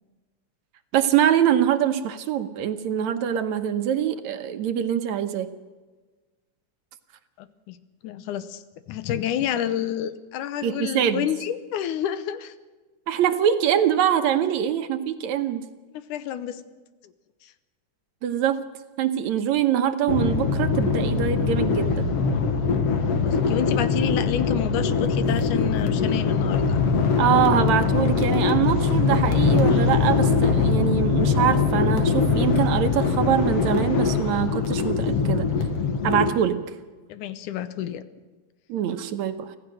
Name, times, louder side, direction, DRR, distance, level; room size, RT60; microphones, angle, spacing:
voice 1, 0.9-5.5 10.6-11.3 13.1-15.7 18.2-18.6 19.0-22.2 27.2-35.5 36.0-36.7 38.7-39.6, right 9 dB, 70° right, 9 dB, 2.2 m, -24 dB
voice 2, 7.4-7.8 8.0-12.5 16.1-16.6 17.0-17.1 17.4-17.5 23.1-26.8 37.1-38.0, left 10 dB, 80° left, 12 dB, 2.4 m, -29 dB
sound 1, 20.1-36.3, left 5 dB, 55° left, 2.3 m, -22 dB
25.0 x 16.0 x 6.5 m, 1.3 s
omnidirectional pair, 3.6 m